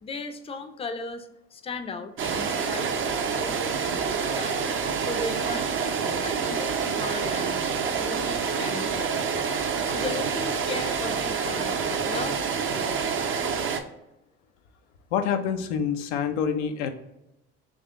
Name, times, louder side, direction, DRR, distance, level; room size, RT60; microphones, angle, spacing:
voice 1, 0.0-2.9 3.2-7.6 8.0-9.1 9.9-12.4 12.7-13.4, left 4 dB, 20° left, 7 dB, 0.5 m, -37 dB
sound 1, 2.2-13.8, right 6 dB, 40° right, 0.6 m, -27 dB
voice 2, 15.1-16.9, left 7 dB, 80° left, 6 dB, 0.5 m, -26 dB
3.8 x 3.0 x 3.5 m, 0.88 s
hypercardioid pair, 65°, 33 cm